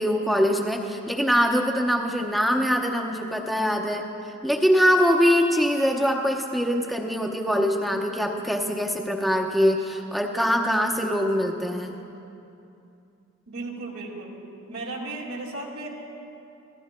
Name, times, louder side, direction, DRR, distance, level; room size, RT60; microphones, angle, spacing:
voice 1, 0.0-4.1 4.4-12.0, equal, ahead, 1 dB, 0.7 m, -23 dB
voice 2, 13.5-14.3 14.7-15.9, right 2 dB, 85° right, -2 dB, 2.1 m, -35 dB
25.5 x 15.5 x 2.2 m, 2.7 s
head